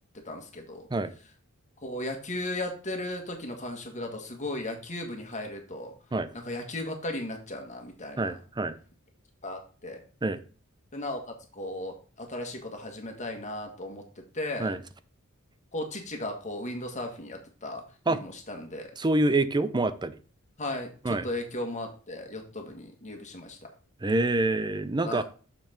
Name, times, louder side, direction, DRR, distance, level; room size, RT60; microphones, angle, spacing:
voice 1, 0.1-0.9 1.8-5.9 6.3-8.3 9.4-10.0 10.9-11.2 11.5-14.7 15.7-18.9 20.6-23.6 25.0-25.2, left 1 dB, 35° left, 3 dB, 1.8 m, -36 dB
voice 2, 8.2-8.7 10.2-10.4 14.6-14.8 18.1-18.2 19.0-20.1 21.0-21.2 24.0-25.2, right 2 dB, 20° right, 13 dB, 0.5 m, -26 dB
6.9 x 5.9 x 4.3 m, 0.39 s
head